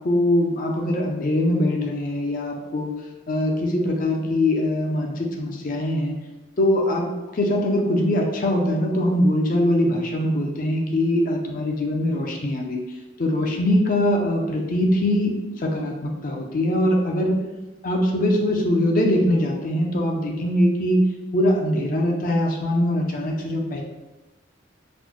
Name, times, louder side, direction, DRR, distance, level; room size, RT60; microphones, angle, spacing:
voice 1, 0.0-2.9 3.3-6.2 6.6-7.1 7.3-12.8 13.2-17.4 17.8-23.8, left 1 dB, 45° left, 1 dB, 0.5 m, -22 dB
4.1 x 2.1 x 3.0 m, 1.1 s
head